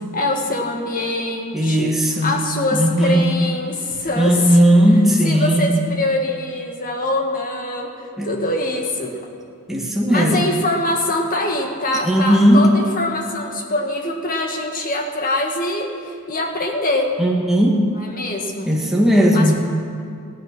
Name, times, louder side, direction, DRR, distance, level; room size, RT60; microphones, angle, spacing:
voice 1, 0.1-1.9 2.2-4.6 5.2-9.2 10.1-17.1 17.9-18.7 19.3-19.6, left 2 dB, 40° left, 2 dB, 1.7 m, -23 dB
voice 2, 1.5-2.4 2.7-3.2 4.2-5.7 8.2-8.3 9.7-10.4 12.0-12.8 17.2-17.9 18.7-19.6, equal, ahead, -2 dB, 1.9 m, -16 dB
16.0 x 12.5 x 6.1 m, 2.5 s
head